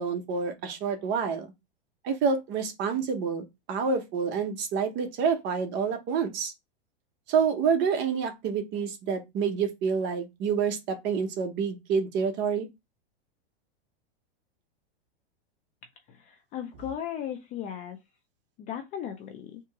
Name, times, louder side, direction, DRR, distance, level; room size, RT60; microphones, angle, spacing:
voice 1, 0.0-1.5 2.0-6.5 7.3-12.7, right 6 dB, 35° right, 0.9 m, -28 dB
voice 2, 16.1-18.0 18.6-19.6, left 9 dB, 25° left, 0.4 m, -36 dB
3.4 x 2.9 x 4.6 m
supercardioid pair, 145°, 32 cm